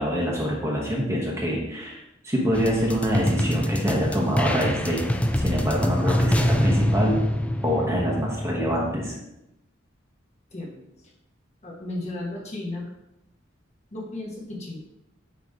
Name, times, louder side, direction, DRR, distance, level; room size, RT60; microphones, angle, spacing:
voice 1, 0.0-2.0 2.2-5.1 5.4-7.2 7.6-9.1, equal, 15° right, -3 dB, 1.1 m, -25 dB
sound 1, 2.5-9.1, equal, 5° left, 0.3 m, -25 dB
voice 2, 10.5-10.8 11.6-12.9 13.9-14.8, left 2 dB, 35° left, -3 dB, 1.5 m, -34 dB
9.1 x 3.1 x 3.6 m, 0.89 s
head